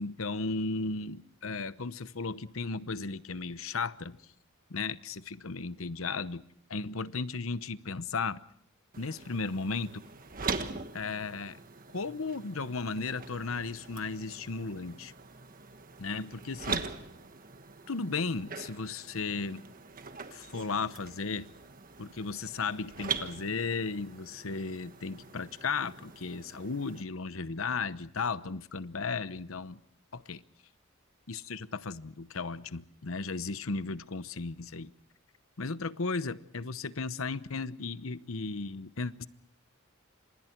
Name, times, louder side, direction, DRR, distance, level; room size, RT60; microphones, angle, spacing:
voice 1, 0.0-4.2 4.7-6.4 6.7-8.4 9.0-10.0 10.9-11.6 11.9-15.1 16.0-16.8 17.9-19.6 20.3-21.5 22.0-29.8 30.1-30.4 31.3-34.9 35.6-39.3, left 4 dB, 70° left, 14 dB, 0.9 m, -35 dB
sound 1, 8.9-27.0, right 5 dB, 45° right, 1.4 m, -42 dB
29.5 x 27.0 x 4.6 m, 0.63 s
head